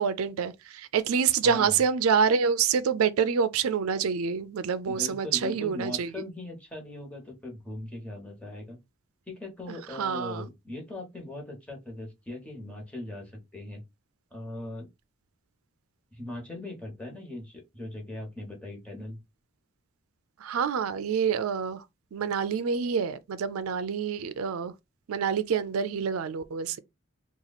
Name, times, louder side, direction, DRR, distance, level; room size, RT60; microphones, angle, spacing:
voice 1, 0.0-6.1 9.9-10.5 20.4-21.8 22.1-24.7 25.1-26.8, right 6 dB, 90° right, 0.4 m, -27 dB
voice 2, 1.4-1.8 4.9-8.8 9.3-13.8 14.3-14.9 16.1-19.2, left 2 dB, 5° left, 1.2 m, -39 dB
2.9 x 2.4 x 4.0 m
head